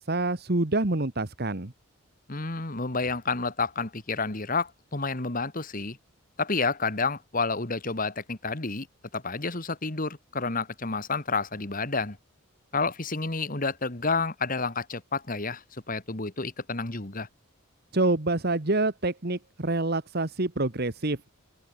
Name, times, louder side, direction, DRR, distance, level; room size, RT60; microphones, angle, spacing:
voice 1, 0.0-1.7 17.9-21.2, right 2 dB, 50° right, 1.5 m, -27 dB
voice 2, 2.3-6.0 6.4-8.9 9.1-12.2 12.7-17.3, left 4 dB, 40° left, 2.1 m, -30 dB
open air
head